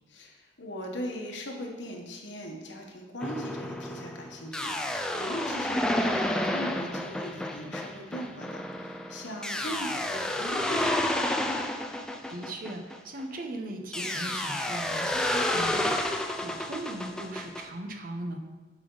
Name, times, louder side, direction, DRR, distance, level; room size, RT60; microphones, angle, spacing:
voice 1, 0.1-11.2, equal, 75° left, 1 dB, 1.3 m, -39 dB
sound 1, 3.2-13.3 13.9-17.6, left 1 dB, 5° left, 0.4 m, -30 dB
voice 2, 12.3-18.4, right 1 dB, 50° right, 4 dB, 0.8 m, -38 dB
8.2 x 5.3 x 3.9 m, 1.3 s
head